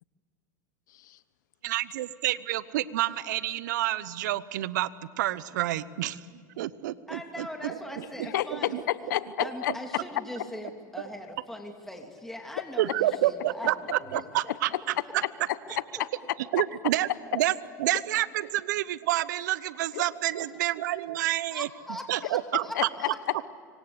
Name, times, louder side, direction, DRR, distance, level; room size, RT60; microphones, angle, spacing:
voice 1, 1.6-4.9 5.2-6.2 6.6-8.8 12.8-14.7 16.5-17.5 17.8-21.7 22.1-22.7, right 14 dB, 75° right, 17 dB, 0.9 m, -29 dB
voice 2, 7.1-8.7 9.4-14.5 15.0-15.1 21.5-23.4, left 1 dB, 5° left, 3 dB, 2.9 m, -41 dB
voice 3, 8.3-9.7 14.5-14.8 15.2-16.4 17.3-17.4 19.9-20.0 22.7-22.9 23.3-23.4, left 13 dB, 75° left, 16 dB, 1.1 m, -31 dB
26.0 x 24.5 x 8.0 m, 2.2 s
hypercardioid pair, 100°, 10 cm